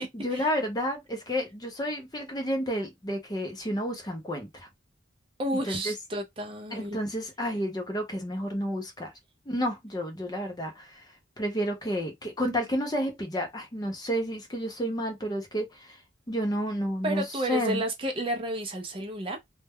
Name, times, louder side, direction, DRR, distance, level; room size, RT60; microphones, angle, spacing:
voice 1, 0.1-4.7 5.7-5.9 6.7-9.1 9.5-11.1 11.4-16.0 16.3-17.8, equal, 20° left, 0.6 m, -31 dB
voice 2, 5.4-7.0 17.0-19.4, right 1 dB, 25° right, 0.4 m, -31 dB
2.2 x 2.1 x 3.4 m
head